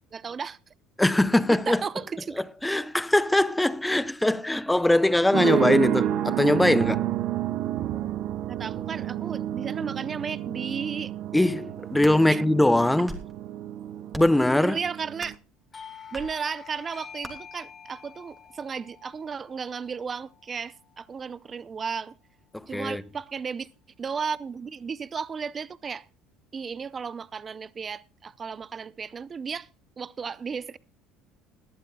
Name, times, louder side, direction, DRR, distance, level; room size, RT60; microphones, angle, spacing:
voice 1, 0.1-0.6 1.7-2.4 8.5-11.1 12.3-12.4 14.6-15.3 16.1-22.1 22.7-23.7 24.0-26.1 26.5-29.7 30.0-30.8, right 6 dB, 30° right, 0.6 m, -34 dB
voice 2, 1.0-1.8 2.6-7.0 11.3-13.2 14.2-14.8 22.5-23.0, left 1 dB, 5° left, 0.7 m, -22 dB
sound 1, 5.3-15.3, right 12 dB, 60° right, 0.8 m, -30 dB
sound 2, 11.8-12.2 12.8-13.4 14.1-14.4 15.2-15.5 16.1-16.3 17.2-17.3, right 1 dB, 10° right, 3.2 m, -40 dB
Doorbell, 15.7-21.0, left 7 dB, 25° left, 2.6 m, -47 dB
20.5 x 12.0 x 2.3 m
supercardioid pair, 100°, 0 cm